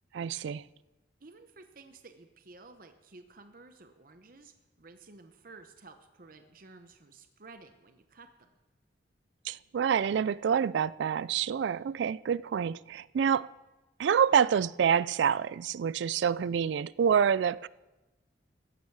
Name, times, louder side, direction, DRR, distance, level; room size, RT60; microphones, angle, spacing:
voice 1, 0.1-0.6 9.4-13.5 14.0-17.7, right 7 dB, 65° right, 0.3 m, -27 dB
voice 2, 1.2-8.5, right 3 dB, 45° right, 0.9 m, -53 dB
15.0 x 11.0 x 4.7 m
head